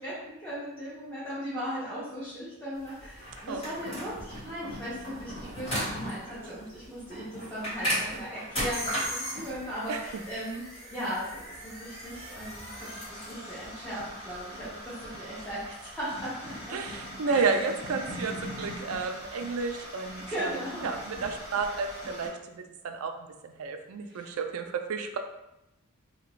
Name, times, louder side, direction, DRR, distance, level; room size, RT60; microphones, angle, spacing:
voice 1, 0.0-10.6 10.9-16.8 17.2-17.5 18.0-18.1 20.3-20.9 24.1-24.3, equal, 10° left, -11 dB, 0.8 m, -38 dB
sound 1, 2.8-22.3, equal, 25° left, 1.3 m, -38 dB
voice 2, 9.9-10.2 16.7-20.5 20.8-25.2, right 4 dB, 70° right, 6 dB, 0.4 m, -32 dB
2.8 x 2.4 x 3.0 m, 0.90 s
head